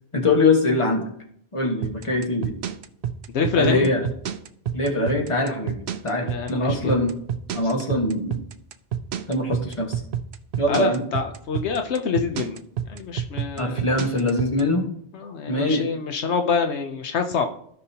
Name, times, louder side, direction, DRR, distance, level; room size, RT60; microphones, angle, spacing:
voice 1, 0.1-1.1 1.5-2.6 3.5-4.0 4.7-5.8 6.0-7.1 7.5-8.4 9.3-10.0 10.6-11.0 13.6-14.9 15.5-15.9, left 2 dB, 30° left, 1 dB, 1.5 m, -22 dB
sound 1, 1.8-14.6, right 9 dB, 70° right, 0.9 m, -28 dB
voice 2, 3.3-3.9 6.3-7.0 7.6-7.8 10.7-12.6 12.9-13.9 15.1-17.5, left 6 dB, 75° left, 5 dB, 1.0 m, -26 dB
16.0 x 5.4 x 2.8 m, 0.68 s
omnidirectional pair, 1.1 m